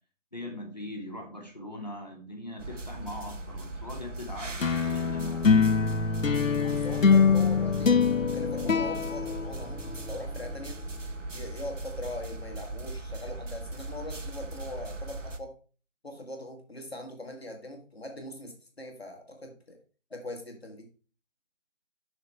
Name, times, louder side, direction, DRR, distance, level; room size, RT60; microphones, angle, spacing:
voice 1, 0.3-5.6, left 1 dB, 35° left, 2 dB, 1.5 m, -41 dB
sound 1, 2.6-15.4, right 2 dB, 70° right, 0.9 m, -39 dB
sound 2, 4.6-10.2, left 5 dB, 85° left, 0.8 m, -24 dB
voice 2, 6.7-10.8 11.3-15.5 16.0-19.8 20.1-20.9, left 1 dB, 50° left, 2 dB, 1.8 m, -41 dB
6.4 x 4.9 x 4.5 m, 0.37 s
figure-of-eight pair, 175°, 38 cm